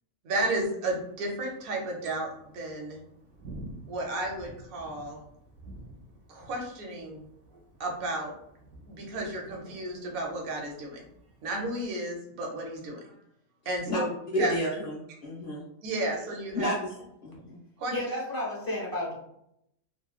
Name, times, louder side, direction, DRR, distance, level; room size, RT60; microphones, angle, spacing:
voice 1, 0.2-3.0 3.9-5.2 6.3-7.3 7.8-8.3 8.9-11.0 11.4-13.1 13.6-14.1 14.4-14.5 15.8-16.7 17.8-17.9, right 2 dB, 50° right, 0 dB, 0.7 m, -33 dB
Thunder, 0.9-11.8, right 1 dB, 75° right, 1.1 m, -50 dB
voice 2, 14.3-15.6 16.5-16.9 17.2-17.6, equal, 55° left, -5 dB, 0.8 m, -30 dB
voice 3, 17.9-19.1, left 1 dB, 20° left, -5 dB, 0.6 m, -32 dB
3.0 x 2.2 x 2.3 m, 0.75 s
omnidirectional pair, 1.5 m